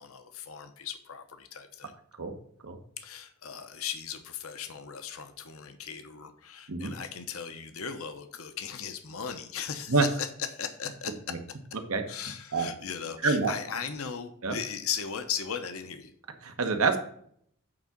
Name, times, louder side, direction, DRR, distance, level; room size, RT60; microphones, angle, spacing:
voice 1, 0.0-1.9 3.0-10.1 10.5-11.1 12.1-16.1, left 7 dB, 75° left, 8 dB, 0.9 m, -37 dB
voice 2, 16.4-17.0, right 4 dB, 75° right, 6 dB, 1.2 m, -26 dB
9.0 x 3.7 x 5.8 m, 0.66 s
head